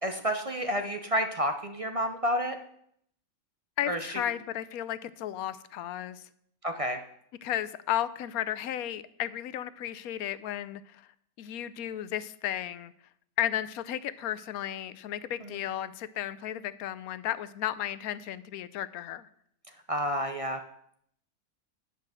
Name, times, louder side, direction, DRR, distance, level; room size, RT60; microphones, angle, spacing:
voice 1, 0.0-2.6 3.9-4.0 6.6-7.0 19.9-20.6, equal, 35° right, 6 dB, 0.6 m, -29 dB
voice 2, 3.8-6.2 7.4-11.0 11.4-12.9 13.4-19.3, left 11 dB, 90° left, 15 dB, 1.1 m, -34 dB
9.7 x 5.4 x 7.6 m, 0.69 s
omnidirectional pair, 1.5 m